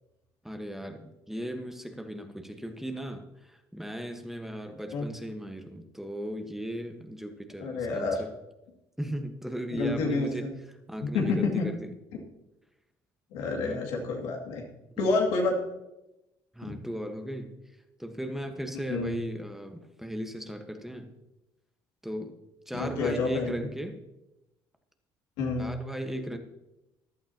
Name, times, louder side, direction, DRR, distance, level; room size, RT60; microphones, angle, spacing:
voice 1, 0.4-8.3 9.0-11.9 13.5-13.9 15.0-15.1 16.5-17.6 18.0-21.1 22.0-22.4 22.7-24.0 25.6-26.4, equal, 5° right, 5 dB, 1.3 m, -37 dB
voice 2, 7.6-8.3 9.7-10.5 11.1-11.7 13.3-14.6 15.0-15.6 16.6-16.7 18.9-19.1 22.7-23.5 25.4-25.7, left 3 dB, 80° left, 0 dB, 2.4 m, -28 dB
15.0 x 11.0 x 2.9 m, 0.96 s
supercardioid pair, 70°, 11 cm